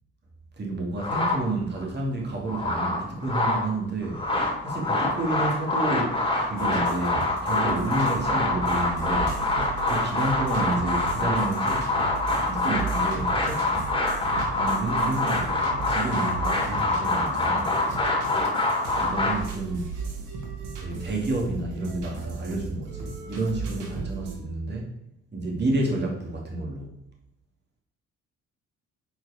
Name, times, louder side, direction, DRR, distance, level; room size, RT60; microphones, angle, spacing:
voice 1, 0.6-4.3 4.6-9.4 9.8-12.0 12.4-14.0 14.6-17.8 19.0-19.8 20.8-24.9 25.3-27.0, right 2 dB, 35° right, -1 dB, 2.3 m, -30 dB
sound 1, 1.0-1.8 2.3-3.7 4.0-19.3, left 2 dB, 15° left, 2.7 m, -25 dB
sound 2, 6.6-24.4, right 4 dB, 85° right, 1.7 m, -36 dB
8.1 x 4.9 x 4.9 m, 0.78 s
cardioid pair, 90°, 30 cm